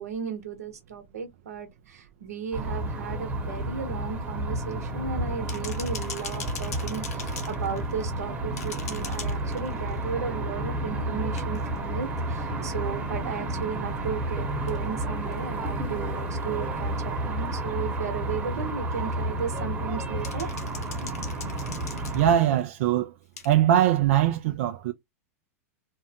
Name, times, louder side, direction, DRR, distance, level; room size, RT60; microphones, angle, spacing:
voice 1, 0.0-20.5, right 6 dB, 85° right, 1.0 m, -35 dB
sound 1, 2.5-22.3, right 1 dB, 20° right, 1.0 m, -31 dB
sound 2, 5.5-8.2 8.5-10.0 11.4-11.8 14.7-14.8 15.3-15.4 17.1-17.2 20.2-22.6 23.4-23.5, left 6 dB, 80° left, 0.9 m, -41 dB
voice 2, 22.1-23.1 23.4-24.9, right 11 dB, 60° right, 0.4 m, -21 dB
2.6 x 2.1 x 2.7 m
hypercardioid pair, 125°, 8 cm